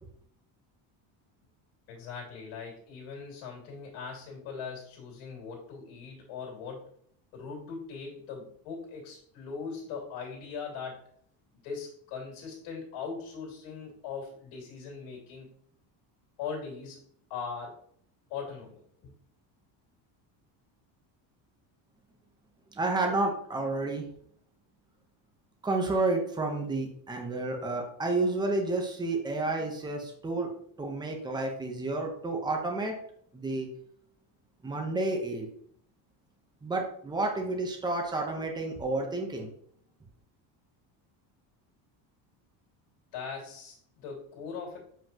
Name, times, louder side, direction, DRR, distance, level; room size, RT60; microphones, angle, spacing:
voice 1, 1.9-6.9 7.3-11.0 11.6-15.5 16.4-17.0 17.3-17.8 18.3-18.8 43.1-44.8, left 5 dB, 90° left, -2 dB, 2.8 m, -40 dB
voice 2, 22.7-24.0 25.6-30.5 30.8-32.9 33.3-33.7 34.6-35.5 36.6-39.5, right 2 dB, 10° right, 2 dB, 0.9 m, -30 dB
7.5 x 5.2 x 2.9 m, 0.64 s
cardioid pair, 165°, 47 cm